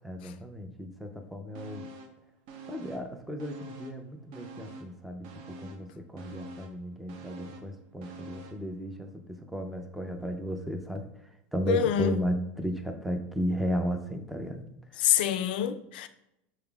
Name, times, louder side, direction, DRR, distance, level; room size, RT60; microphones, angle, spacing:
voice 1, 0.0-1.9 2.7-11.1 11.5-14.6 14.9-15.0, equal, ahead, 0.4 m, -34 dB
sound 1, 1.5-2.2 2.5-4.0 4.3-8.7 9.0-9.1, right 2 dB, 65° right, 0.6 m, -46 dB
voice 2, 11.7-12.2 15.0-16.1, left 10 dB, 80° left, 0.3 m, -26 dB
6.3 x 3.5 x 2.3 m
supercardioid pair, 150°, 5 cm